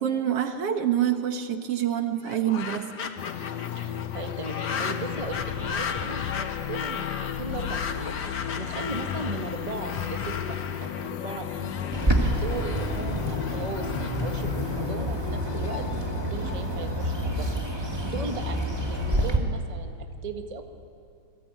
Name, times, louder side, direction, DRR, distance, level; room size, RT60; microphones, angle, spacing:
voice 1, 0.0-2.9, right 10 dB, 55° right, 7 dB, 2.0 m, -26 dB
sound 1, 2.2-15.4, left 6 dB, 50° left, 1.2 m, -37 dB
sound 2, 3.2-19.4, left 9 dB, 70° left, 1.7 m, -34 dB
voice 2, 3.7-15.9 16.3-19.9 20.2-20.6, right 3 dB, 80° right, 5 dB, 0.3 m, -37 dB
Bird, 11.9-19.4, right 1 dB, 10° right, 1.5 m, -28 dB
28.0 x 21.0 x 9.4 m, 2.3 s
omnidirectional pair, 3.7 m